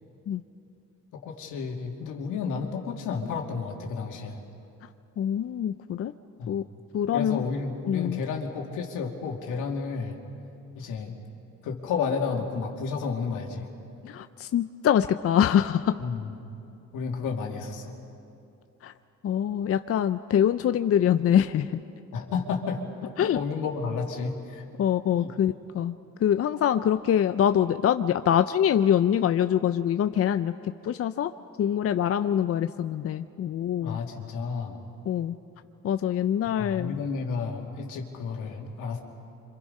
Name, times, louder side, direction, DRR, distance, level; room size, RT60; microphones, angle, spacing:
voice 1, 1.1-4.4 6.4-6.6 7.1-10.2 10.7-11.2 11.6-13.7 16.0-16.3 16.9-18.0 22.1-24.6 25.2-25.3 33.8-34.8 36.6-39.0, left 5 dB, 90° left, 1 dB, 2.6 m, -31 dB
voice 2, 5.2-6.1 6.5-6.6 6.9-7.4 7.9-8.2 14.0-15.9 18.8-18.9 19.2-21.7 23.2-23.4 24.8-25.9 26.2-30.5 30.8-31.3 31.6-34.0 35.1-35.3 35.8-37.0, left 9 dB, 50° left, 10 dB, 0.6 m, -24 dB
27.0 x 26.0 x 5.4 m, 2.7 s
cardioid pair, 90°, 30 cm